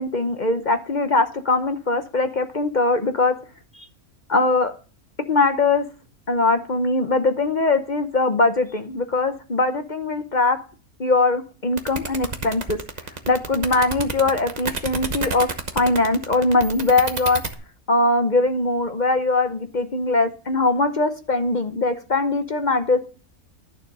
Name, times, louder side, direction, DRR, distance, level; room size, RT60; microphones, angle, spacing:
voice 1, 0.0-3.3 4.3-4.7 5.3-5.8 6.3-10.6 11.0-12.8 13.3-15.5 15.7-17.4 17.9-23.0, left 3 dB, 40° left, 8 dB, 0.8 m, -21 dB
sound 1, 11.8-17.5, right 4 dB, 35° right, 1.0 m, -29 dB
11.5 x 6.9 x 5.4 m, 0.37 s
omnidirectional pair, 1.5 m